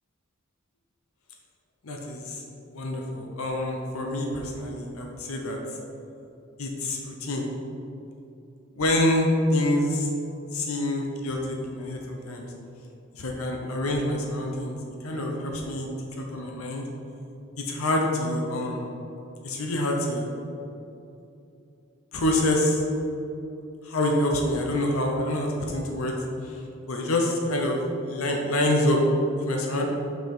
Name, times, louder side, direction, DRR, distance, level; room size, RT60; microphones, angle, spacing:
voice 1, 1.8-2.4 2.7-5.6 6.6-7.5 8.7-10.1 10.5-12.5 13.1-14.8 15.0-15.9 16.3-16.9 17.6-18.9 19.4-20.3 22.1-22.8 23.8-26.2 26.5-26.6 26.9-27.8 28.1-29.0 29.4-29.9, left 1 dB, 85° left, 1 dB, 0.8 m, -26 dB
5.7 x 5.6 x 4.4 m, 2.8 s
head